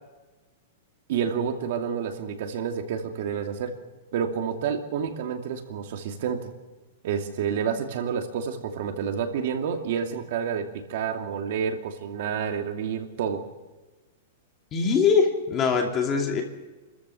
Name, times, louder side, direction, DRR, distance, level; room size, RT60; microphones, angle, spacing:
voice 1, 1.1-3.8 4.1-6.5 7.0-13.5, right 7 dB, 50° right, 4 dB, 2.6 m, -29 dB
voice 2, 14.7-16.4, left 5 dB, 20° left, 2 dB, 2.8 m, -22 dB
28.5 x 14.5 x 7.1 m, 1.2 s
supercardioid pair, 170°, 0 cm